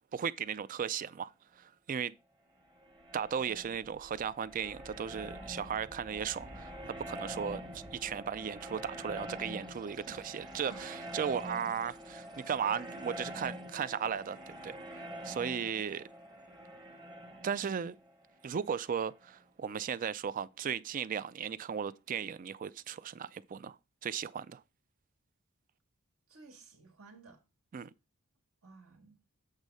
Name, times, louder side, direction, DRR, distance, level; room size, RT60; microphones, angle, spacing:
voice 1, 0.1-2.1 3.1-14.4 14.6-16.1 17.4-17.9 18.4-23.8 24.0-24.6 27.7-27.9, right 7 dB, 40° right, 0.3 m, -36 dB
sound 1, 2.6-19.2, equal, 20° right, 0.9 m, -46 dB
voice 2, 10.1-10.9 17.4-17.9 26.3-27.4 28.6-29.2, right 3 dB, 75° right, 1.7 m, -53 dB
8.2 x 3.5 x 5.3 m
head